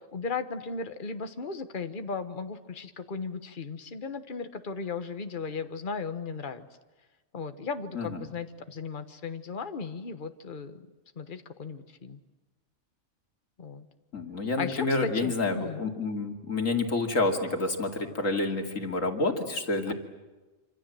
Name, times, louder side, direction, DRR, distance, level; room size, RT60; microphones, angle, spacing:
voice 1, 0.1-6.7 7.3-10.9 11.2-12.2 13.6-13.9 14.6-15.9 19.9-20.0, left 4 dB, 40° left, 8 dB, 1.4 m, -36 dB
voice 2, 14.1-19.9, left 3 dB, 80° left, 3 dB, 3.0 m, -28 dB
26.5 x 26.5 x 7.7 m, 1.2 s
omnidirectional pair, 1.3 m